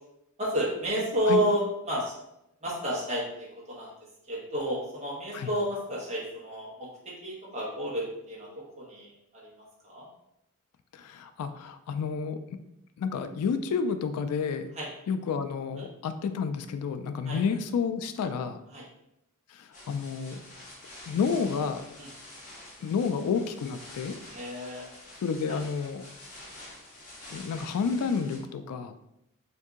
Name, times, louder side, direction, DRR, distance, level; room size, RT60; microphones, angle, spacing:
voice 1, 0.4-2.1 2.6-3.9 4.3-9.5 9.8-10.1 14.8-14.9 15.7-15.8 17.2-17.4 18.7-18.8 22.0-22.1 24.3-24.9 25.5-25.6, equal, 30° right, -5 dB, 1.1 m, -31 dB
voice 2, 10.9-12.6 13.0-14.7 15.1-18.6 19.5-20.4 21.1-21.8 22.8-24.2 25.2-26.0 27.3-29.0, left 5 dB, 75° left, 11 dB, 0.3 m, -30 dB
sound 1, 19.7-28.4, left 1 dB, 35° left, 1.1 m, -47 dB
2.7 x 2.6 x 3.5 m, 0.82 s
head